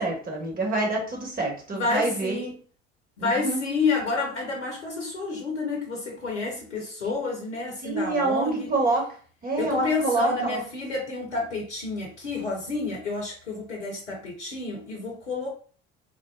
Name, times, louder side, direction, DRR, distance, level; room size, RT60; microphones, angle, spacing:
voice 1, 0.0-2.4 3.2-3.6 7.8-9.1 9.4-10.7, right 2 dB, 25° right, -1 dB, 1.2 m, -26 dB
voice 2, 1.7-2.5 3.2-8.7 9.6-15.5, left 3 dB, 85° left, -1 dB, 0.7 m, -29 dB
3.6 x 2.2 x 2.3 m, 0.43 s
figure-of-eight pair, 60°, 34 cm